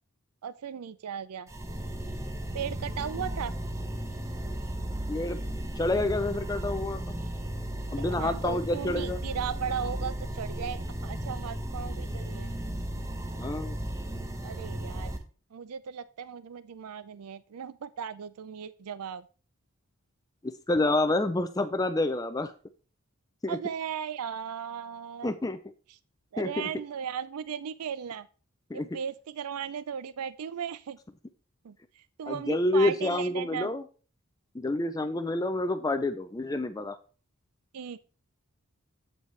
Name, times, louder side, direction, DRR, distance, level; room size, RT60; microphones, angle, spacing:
voice 1, 0.4-1.5 2.5-3.5 8.1-12.5 14.4-15.1 15.5-19.2 23.5-25.3 26.3-28.3 28.7-31.0 31.6-31.8 32.2-33.7 37.7-38.0, right 7 dB, 90° right, 16 dB, 0.4 m, -36 dB
sound 1, 1.5-15.2, right 1 dB, 15° right, 0.8 m, -35 dB
voice 2, 5.8-7.0 7.9-9.2 13.4-13.8 20.4-22.5 23.4-23.6 25.2-25.6 26.4-26.7 28.7-28.9 32.3-33.8 34.5-37.0, left 2 dB, 15° left, 11 dB, 0.3 m, -28 dB
8.3 x 8.0 x 3.2 m, 0.38 s
head